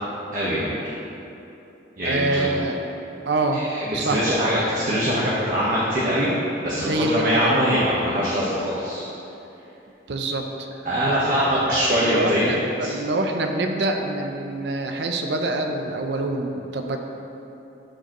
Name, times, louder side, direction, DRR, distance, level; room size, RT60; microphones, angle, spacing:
voice 1, 0.3-0.8 2.0-2.5 3.5-6.3 6.6-9.0 10.8-12.5 12.8-12.9, equal, 45° right, -8 dB, 1.1 m, -23 dB
voice 2, 2.0-2.8 3.3-3.7 3.9-4.3 6.8-7.7 10.1-10.7 11.1-17.0, right 2 dB, 70° right, 4 dB, 0.6 m, -26 dB
12.0 x 4.8 x 3.0 m, 2.8 s
head